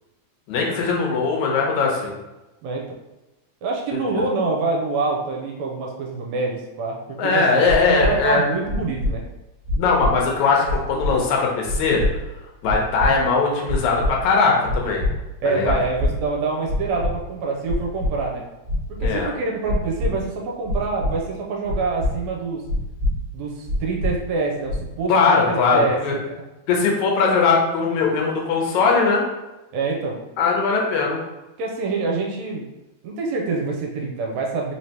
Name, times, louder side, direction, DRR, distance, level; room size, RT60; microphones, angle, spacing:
voice 1, 0.5-2.2 4.1-4.2 7.2-8.4 9.8-12.0 12.6-15.0 15.4-15.7 19.0-19.3 25.1-26.1 26.7-29.3 30.4-31.2, left 4 dB, 80° left, -1 dB, 2.1 m, -20 dB
voice 2, 3.6-7.5 7.9-9.2 15.4-18.4 18.9-22.6 23.3-26.0 26.3-26.4 29.7-30.2 31.6-32.6 33.0-34.7, right 3 dB, 80° right, -1 dB, 1.9 m, -26 dB
sound 1, 7.6-8.1 8.6-9.1 9.6-10.1 10.6-11.1 11.6-12.1 12.6-13.1 13.6-14.1 14.6-15.1 15.6-16.1 16.6-17.1 17.6-18.1 18.6-19.1 19.6-20.1 20.6-21.1 21.6-22.1 22.6-23.1 23.6-24.1 24.6-25.0, left 1 dB, 45° right, 0.8 m, -23 dB
4.7 x 3.2 x 2.8 m, 1.0 s
omnidirectional pair, 3.3 m